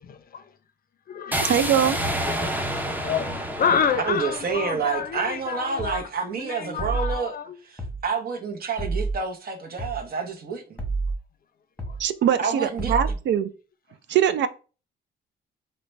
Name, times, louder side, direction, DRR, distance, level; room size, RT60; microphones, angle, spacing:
voice 1, 0.1-0.4 1.1-1.5 2.4-2.6 3.0-6.1 6.4-7.6, left 7 dB, 45° left, 0.6 m, -28 dB
sound 1, 1.3-5.4, right 1 dB, 10° right, 0.5 m, -29 dB
voice 2, 1.4-2.0 12.0-13.5 14.1-14.5, right 9 dB, 65° right, 0.4 m, -22 dB
voice 3, 4.0-7.4 7.6-10.6 12.4-12.9, right 5 dB, 50° right, 0.8 m, -28 dB
sound 2, 5.8-6.0 6.8-7.2 7.8-8.0 8.8-9.2 9.8-10.0 10.8-11.2 11.8-12.0 12.8-13.2, right 3 dB, 5° left, 1.1 m, -28 dB
3.8 x 2.2 x 3.2 m
cardioid pair, 90°, 20 cm